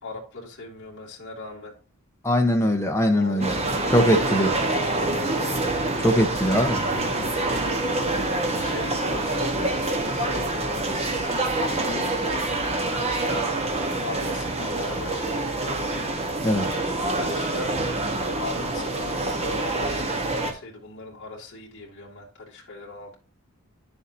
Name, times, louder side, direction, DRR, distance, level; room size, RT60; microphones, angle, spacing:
voice 1, 0.0-1.7 3.1-4.1 4.7-5.4 7.9-8.1 8.5-9.7 10.1-11.4 11.8-12.4 12.9-13.7 14.0-15.8 17.1-18.0 18.4-23.2, left 3 dB, 55° left, 2.4 m, -39 dB
voice 2, 2.2-3.6 3.9-4.5 6.0-6.8 16.4-16.7, equal, 15° left, 1.0 m, -21 dB
sound 1, 3.4-20.5, right 2 dB, 30° right, 1.2 m, -26 dB
9.9 x 7.0 x 2.8 m
head